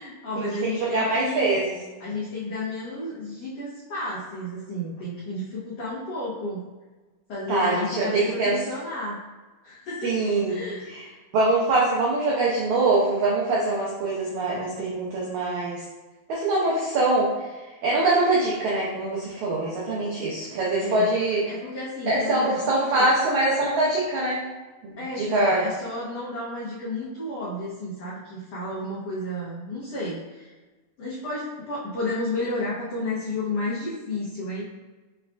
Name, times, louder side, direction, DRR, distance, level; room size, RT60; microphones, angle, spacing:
voice 1, 0.0-1.6 2.0-6.6 7.3-9.2 9.6-10.1 10.5-10.9 20.8-21.1 21.5-23.1 25.0-30.5 31.0-34.6, left 2 dB, 85° left, -9 dB, 1.4 m, -32 dB
voice 2, 0.8-1.8 7.5-8.6 10.0-10.6 10.9-11.0 11.3-15.8 16.3-17.5 17.8-21.4 22.1-24.4 24.8-25.6, right 2 dB, 90° right, -5 dB, 1.6 m, -23 dB
6.9 x 2.4 x 2.4 m, 1.2 s
omnidirectional pair, 4.1 m